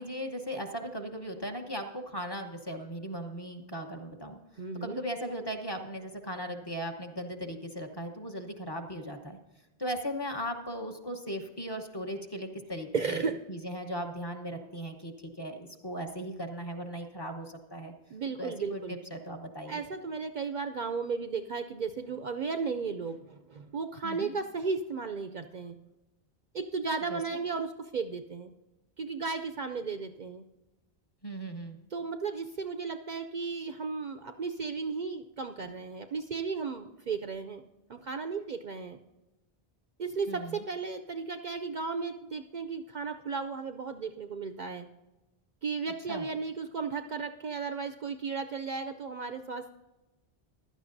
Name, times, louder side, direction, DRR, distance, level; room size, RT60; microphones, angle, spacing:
voice 1, 0.0-4.4 4.8-9.4 9.8-17.9 18.4-19.8 24.0-24.3 27.1-27.4 31.2-31.8 40.3-40.6 46.1-46.2, equal, 25° left, 4 dB, 1.0 m, -38 dB
voice 2, 4.6-5.0 12.9-13.5 18.1-19.0 19.7-25.8 26.5-28.5 29.0-30.4 31.9-37.6 37.9-39.0 40.0-44.9 45.6-49.7, right 5 dB, 55° right, 8 dB, 0.6 m, -35 dB
15.5 x 11.5 x 2.6 m, 1.1 s
omnidirectional pair, 1.0 m